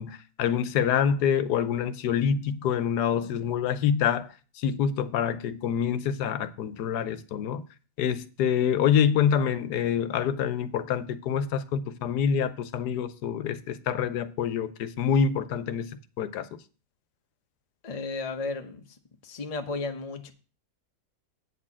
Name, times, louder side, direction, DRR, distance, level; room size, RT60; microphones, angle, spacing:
voice 1, 0.0-4.3 4.6-7.6 8.0-15.9 16.2-16.6, left 8 dB, 80° left, 1.2 m, -26 dB
voice 2, 3.2-3.5 17.8-18.8 19.2-20.3, left 3 dB, 30° left, 0.8 m, -34 dB
8.7 x 4.3 x 7.3 m
omnidirectional pair, 1.7 m